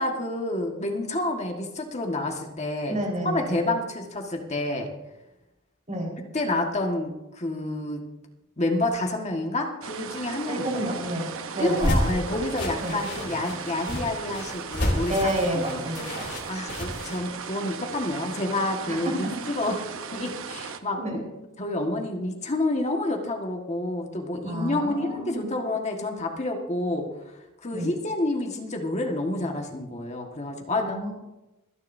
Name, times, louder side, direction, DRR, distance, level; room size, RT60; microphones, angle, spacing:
voice 1, 0.0-3.0 3.2-4.9 6.3-8.0 8.6-10.7 11.6-15.3 15.5-19.8 20.1-21.2 21.6-31.0, left 2 dB, 30° left, 2 dB, 1.7 m, -29 dB
voice 2, 2.9-3.5 5.9-6.1 10.5-12.2 12.8-13.0 15.1-16.3 18.9-19.1 21.0-21.2 24.4-25.5 27.7-27.9 30.7-31.1, right 1 dB, 35° right, -2 dB, 4.6 m, -30 dB
sound 1, 9.8-20.8, right 6 dB, 65° right, 0.9 m, -37 dB
sound 2, 11.6-17.2, left 1 dB, 55° left, 3.1 m, -30 dB
26.5 x 10.5 x 2.7 m, 1.0 s
head